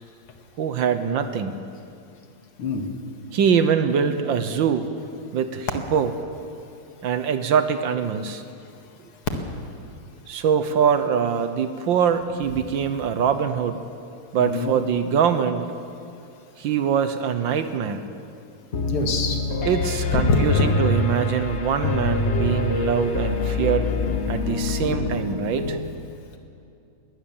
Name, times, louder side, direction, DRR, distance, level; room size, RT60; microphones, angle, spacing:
voice 1, 0.6-1.6 3.3-4.9 5.3-6.1 7.0-8.4 10.3-13.8 14.3-15.7 16.6-18.0 19.6-23.9 24.3-25.8, right 7 dB, 65° right, 10 dB, 1.6 m, -23 dB
voice 2, 14.4-14.7 18.9-19.4 20.1-20.6, left 3 dB, 80° left, 4 dB, 2.7 m, -23 dB
Piano, 18.7-25.8, left 3 dB, 40° left, 1.1 m, -25 dB
21.0 x 17.5 x 7.2 m, 2.5 s
omnidirectional pair, 2.4 m